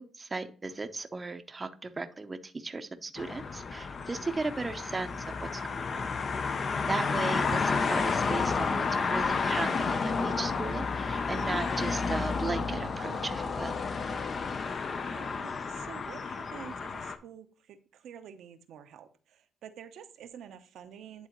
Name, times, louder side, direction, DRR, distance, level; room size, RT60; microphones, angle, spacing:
voice 1, 0.0-6.1 6.8-13.7, right 3 dB, 25° right, 9 dB, 0.6 m, -36 dB
sound 1, 3.2-17.2, left 4 dB, 45° left, 0.6 m, -31 dB
voice 2, 14.9-21.3, right 9 dB, 75° right, 9 dB, 0.7 m, -49 dB
10.0 x 3.7 x 3.0 m, 0.42 s
cardioid pair, 90°, 0 cm